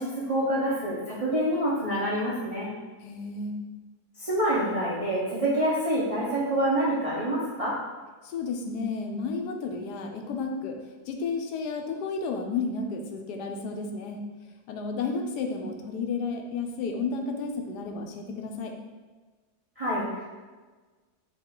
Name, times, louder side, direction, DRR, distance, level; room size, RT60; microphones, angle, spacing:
voice 1, 0.0-2.7 4.2-7.8 19.8-20.2, right 1 dB, 40° right, -7 dB, 0.5 m, -27 dB
voice 2, 3.0-3.5 8.2-10.7 11.1-14.2 14.7-18.7, left 4 dB, 85° left, 3 dB, 1.2 m, -32 dB
5.1 x 2.4 x 3.7 m, 1.3 s
omnidirectional pair, 1.7 m